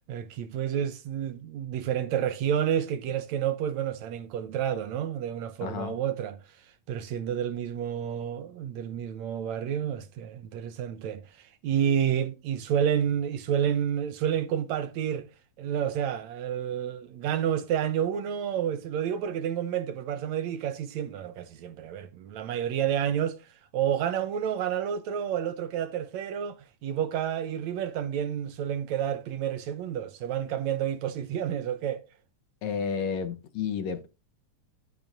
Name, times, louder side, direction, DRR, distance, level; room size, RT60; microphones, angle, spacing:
voice 1, 0.0-6.4 6.9-15.3 15.6-23.4 23.7-32.0, right 9 dB, 70° right, 1.9 m, -30 dB
voice 2, 5.6-6.0 32.6-34.1, left 6 dB, 70° left, 2.1 m, -31 dB
11.5 x 10.5 x 2.6 m
omnidirectional pair, 3.6 m